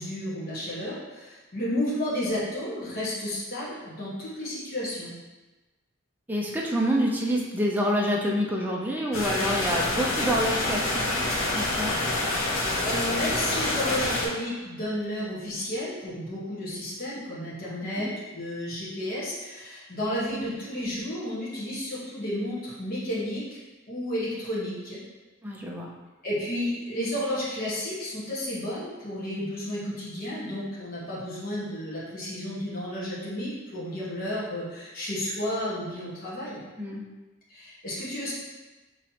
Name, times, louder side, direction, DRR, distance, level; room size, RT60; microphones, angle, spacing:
voice 1, 0.0-5.1 12.4-23.6 23.9-25.0 26.2-36.6 37.5-38.3, left 1 dB, 45° left, -8 dB, 1.2 m, -32 dB
voice 2, 6.3-11.2 11.5-12.0 17.8-18.1 25.4-25.9 36.8-37.0, equal, 10° right, -2 dB, 0.4 m, -27 dB
sound 1, 9.1-14.3, left 2 dB, 70° left, 0.8 m, -27 dB
5.6 x 3.1 x 2.8 m, 1.2 s
head